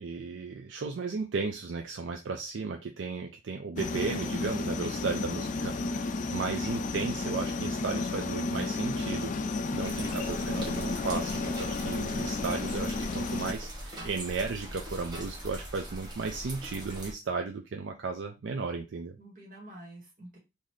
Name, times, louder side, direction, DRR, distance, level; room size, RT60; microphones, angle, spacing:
voice 1, 0.0-19.2, right 4 dB, 70° right, 4 dB, 0.4 m, -35 dB
sound 1, 3.8-13.5, left 3 dB, 40° left, 0.3 m, -32 dB
sound 2, 9.8-17.1, right 1 dB, 20° right, 1.1 m, -41 dB
voice 2, 10.0-10.5 19.2-20.4, right 1 dB, 45° right, -1 dB, 1.6 m, -48 dB
3.9 x 2.6 x 3.1 m, 0.25 s
head